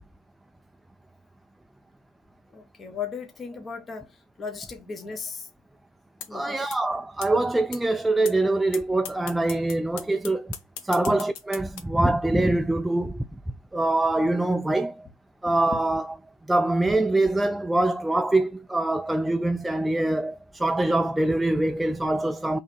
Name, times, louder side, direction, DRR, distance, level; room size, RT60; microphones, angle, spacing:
voice 1, 2.5-5.5 6.3-6.7, left 6 dB, 30° left, 0.9 m, -37 dB
sound 1, 6.2-6.3 6.7-6.8 7.2-7.3 7.7-7.8 8.2-8.3 8.7-8.8 9.0-11.8, left 9 dB, 65° left, 0.9 m, -36 dB
voice 2, 6.3-10.5 10.8-15.1 15.4-16.1 16.5-22.6, right 2 dB, 5° right, 0.3 m, -24 dB
3.9 x 2.8 x 4.3 m
supercardioid pair, 95°, 0 cm